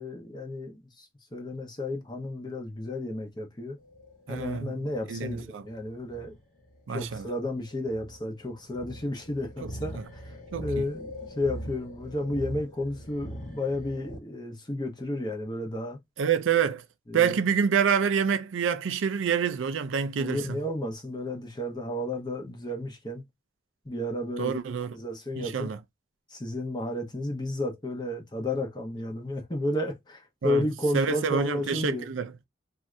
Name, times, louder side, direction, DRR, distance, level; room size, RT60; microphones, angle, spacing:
voice 1, 0.0-3.8 4.3-6.3 6.9-10.3 10.6-16.0 17.1-17.3 20.2-23.2 23.9-24.6 24.9-25.7 26.3-32.1, left 1 dB, 25° left, 0.8 m, -32 dB
sound 1, 3.8-14.2, equal, 45° left, 1.1 m, -42 dB
voice 2, 4.3-4.8 5.1-5.6 6.9-7.3 9.6-10.0 10.5-10.9 16.2-16.8 17.1-20.6 24.4-25.0 25.4-25.8 30.4-30.7 30.9-32.3, right 7 dB, 85° right, 0.4 m, -27 dB
2.7 x 2.4 x 3.2 m
head